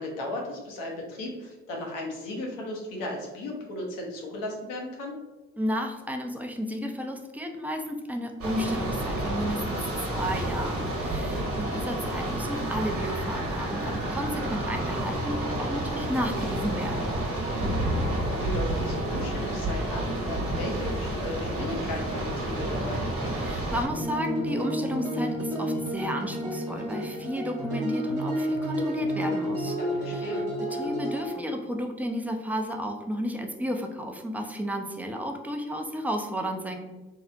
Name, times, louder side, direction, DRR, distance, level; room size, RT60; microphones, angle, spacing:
voice 1, 0.0-5.2 11.2-11.5 17.5-17.9 18.3-23.0 29.8-30.4, left 1 dB, 85° left, 0 dB, 0.7 m, -36 dB
voice 2, 5.6-17.1 23.4-29.8 30.0-36.8, equal, 5° right, 3 dB, 0.4 m, -32 dB
sound 1, 8.4-23.9, right 1 dB, 45° right, 1.0 m, -30 dB
sound 2, 23.9-31.3, equal, 70° right, 0.7 m, -30 dB
2.8 x 2.0 x 2.4 m, 1.2 s
hypercardioid pair, 45°, 32 cm